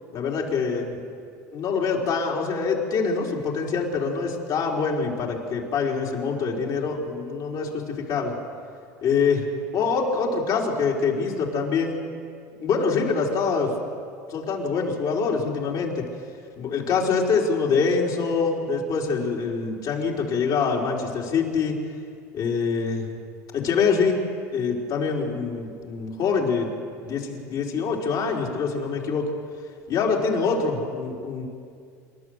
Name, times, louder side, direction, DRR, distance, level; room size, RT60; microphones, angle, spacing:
voice 1, 0.1-1.0 1.5-8.3 9.0-9.5 9.7-12.0 12.6-13.7 14.3-16.0 16.6-21.7 22.3-23.1 23.5-24.2 24.5-26.7 27.0-29.2 29.9-31.4, left 5 dB, 50° left, -2 dB, 4.4 m, -25 dB
27.5 x 12.0 x 8.1 m, 2.3 s
hypercardioid pair, 90°, 9 cm